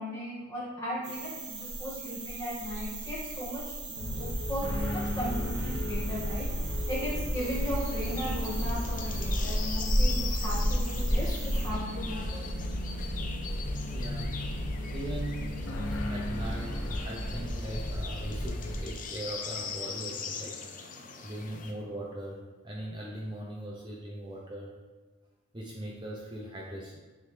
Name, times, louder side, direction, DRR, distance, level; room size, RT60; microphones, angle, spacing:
voice 1, 0.0-6.4 6.9-12.5, equal, 15° left, -7 dB, 1.8 m, -37 dB
sound 1, 1.0-11.7, equal, 60° right, 1.2 m, -33 dB
sound 2, 3.9-18.8, left 1 dB, 70° left, 0.8 m, -34 dB
sound 3, 7.4-21.7, left 5 dB, 40° left, 0.6 m, -42 dB
voice 2, 13.9-14.4 14.9-15.6 16.1-20.6 21.2-24.7 25.5-27.0, right 1 dB, 20° right, -3 dB, 0.6 m, -40 dB
9.4 x 3.7 x 3.2 m, 1.3 s
head